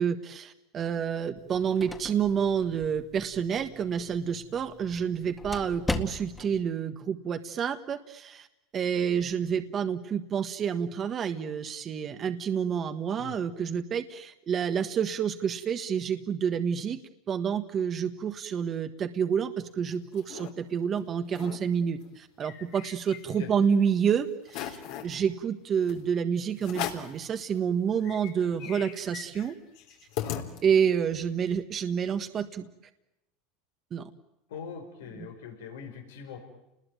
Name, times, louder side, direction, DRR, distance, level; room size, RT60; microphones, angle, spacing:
voice 1, 0.0-8.5 8.7-17.0 17.3-29.5 30.6-32.7 33.9-34.1 35.1-35.3, right 7 dB, 35° right, 7 dB, 1.5 m, -29 dB
sound 1, 1.4-6.6, left 2 dB, 10° left, 1.9 m, -39 dB
sound 2, 19.7-20.5 20.9-21.0 21.3-21.6 22.0-23.6 24.0-24.1 24.5-25.2 25.9-26.0 26.6-27.2 27.7-27.8 28.0-31.0, left 11 dB, 65° left, 3.8 m, -38 dB
voice 2, 34.5-36.4, left 7 dB, 90° left, 4 dB, 4.9 m, -42 dB
30.0 x 20.5 x 9.3 m, 0.92 s
supercardioid pair, 115°, 0 cm